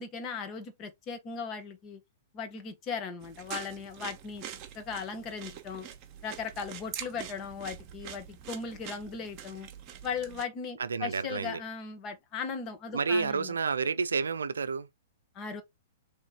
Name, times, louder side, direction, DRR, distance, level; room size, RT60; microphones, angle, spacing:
voice 1, 0.0-2.0 2.3-4.4 4.7-5.9 6.2-9.7 10.0-13.5 15.3-15.6, left 5 dB, 35° left, 1.2 m, -38 dB
sound 1, 3.2-10.4, right 9 dB, 35° right, 1.1 m, -44 dB
voice 2, 10.8-11.6 12.9-14.9, right 5 dB, 85° right, 0.4 m, -30 dB
3.2 x 3.1 x 4.0 m
hypercardioid pair, 120°, 0 cm